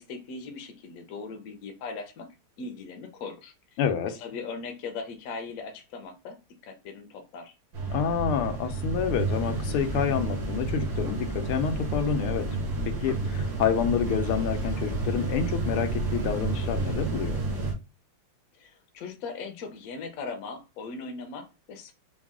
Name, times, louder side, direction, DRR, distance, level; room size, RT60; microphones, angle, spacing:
voice 1, 0.0-2.3 2.6-3.8 4.1-6.4 6.6-7.5 18.6-21.9, left 4 dB, 55° left, 1.0 m, -39 dB
voice 2, 3.8-4.1 7.9-12.5 13.0-17.4, left 7 dB, 85° left, 1.7 m, -28 dB
sound 1, 7.7-17.7, right 2 dB, 65° right, 2.2 m, -30 dB
5.2 x 2.4 x 3.6 m
omnidirectional pair, 2.3 m